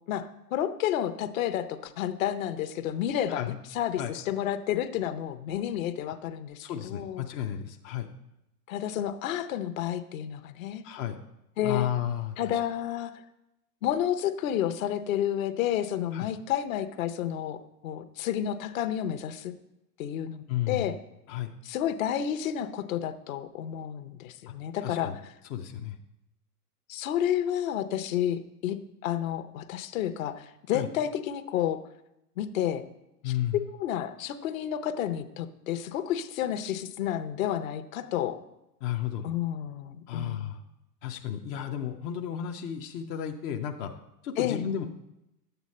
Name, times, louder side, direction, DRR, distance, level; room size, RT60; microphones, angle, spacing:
voice 1, 0.1-7.2 8.7-10.8 11.6-11.9 12.4-13.2 13.8-19.5 20.0-21.0 21.6-25.3 26.9-28.8 29.0-31.8 32.4-32.9 33.2-38.4 39.2-40.5 44.4-44.6, left 10 dB, 60° left, 11 dB, 0.9 m, -30 dB
voice 2, 6.6-8.1 10.8-11.2 11.6-12.3 16.1-16.3 20.5-20.9 21.3-21.5 24.8-25.2 25.5-26.0 30.7-30.9 33.2-33.6 38.8-39.3 40.1-40.6 41.0-43.9 44.2-44.8, left 10 dB, 20° left, 3 dB, 0.4 m, -32 dB
11.0 x 8.1 x 4.2 m, 0.88 s
hypercardioid pair, 115°, 46 cm